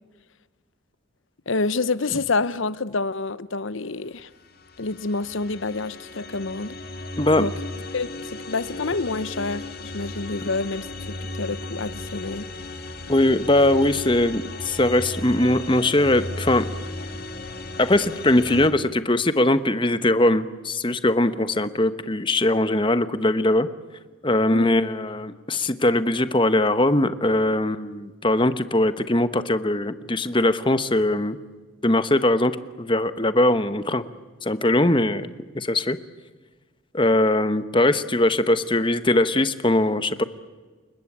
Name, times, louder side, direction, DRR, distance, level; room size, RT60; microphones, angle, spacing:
voice 1, 1.5-4.3 4.8-6.8 7.4-7.5 7.9-12.5 24.5-24.8, left 3 dB, 65° left, 0.9 m, -28 dB
sound 1, 4.3-18.7, left 2 dB, 45° left, 2.2 m, -35 dB
voice 2, 7.2-7.5 13.1-16.6 17.8-23.7 24.2-31.4 31.8-34.0 34.4-35.3 35.5-36.0 36.9-40.2, left 1 dB, 25° left, 1.1 m, -21 dB
29.5 x 21.0 x 8.8 m
head